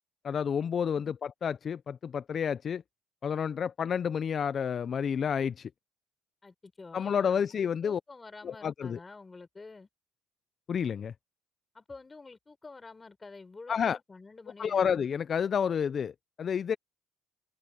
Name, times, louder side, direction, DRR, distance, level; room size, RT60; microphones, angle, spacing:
voice 1, 0.2-2.8 3.2-5.7 6.9-8.0 8.4-9.0 10.7-11.1 13.7-14.0 14.6-16.8, left 7 dB, 40° left, 0.4 m, -30 dB
voice 2, 6.4-9.9 11.7-14.9, left 3 dB, 20° left, 4.2 m, -49 dB
open air
cardioid pair, 120°, 0 cm